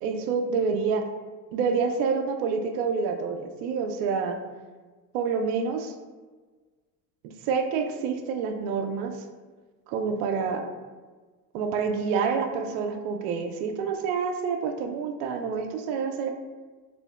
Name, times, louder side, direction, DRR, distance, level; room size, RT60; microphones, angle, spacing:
voice 1, 0.0-1.1 1.5-4.4 5.1-5.9 7.2-9.2 9.9-10.7 11.5-16.3, right 5 dB, 70° right, 6 dB, 0.5 m, -28 dB
2.7 x 2.5 x 2.3 m, 1.4 s
hypercardioid pair, 75°, 47 cm